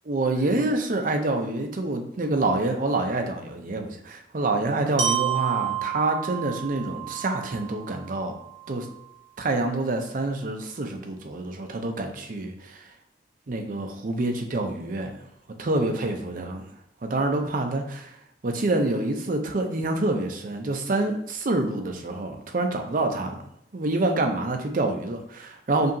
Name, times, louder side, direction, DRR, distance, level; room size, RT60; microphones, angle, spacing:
voice 1, 0.1-8.3 8.7-8.9 9.4-12.9 13.5-15.3 15.6-16.7 17.0-23.5 23.7-25.9, right 2 dB, 45° right, 4 dB, 0.5 m, -27 dB
Glockenspiel, 5.0-9.0, right 11 dB, 85° right, 0.7 m, -30 dB
5.1 x 2.8 x 2.6 m, 0.77 s
head